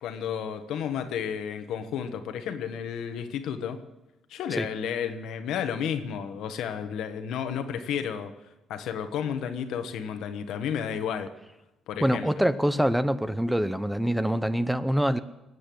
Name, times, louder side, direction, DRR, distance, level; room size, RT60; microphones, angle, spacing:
voice 1, 0.0-3.8 4.3-8.3 8.7-11.3 11.9-12.3, left 8 dB, 85° left, 8 dB, 1.4 m, -32 dB
voice 2, 12.0-15.2, equal, 5° right, 13 dB, 0.8 m, -25 dB
20.5 x 8.2 x 7.9 m, 0.98 s
cardioid pair, 90°, 0 cm